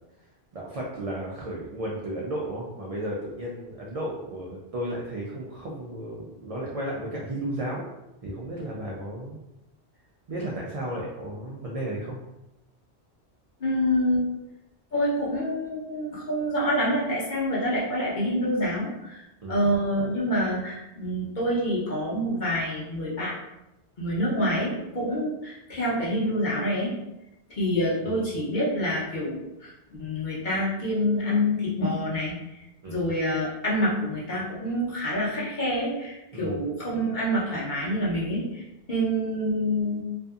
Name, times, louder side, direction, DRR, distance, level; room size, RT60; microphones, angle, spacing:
voice 1, 0.5-7.9 8.2-9.4 10.3-12.2 19.4-19.7 28.0-28.3 32.8-33.1 36.3-36.6, right 1 dB, 60° right, -4 dB, 0.4 m, -34 dB
voice 2, 13.6-14.3 14.9-19.2 19.5-23.3 24.0-26.9 27.5-29.7 30.0-32.4 32.9-40.0, equal, 50° left, -6 dB, 0.9 m, -27 dB
2.6 x 2.5 x 2.3 m, 0.94 s
omnidirectional pair, 1.1 m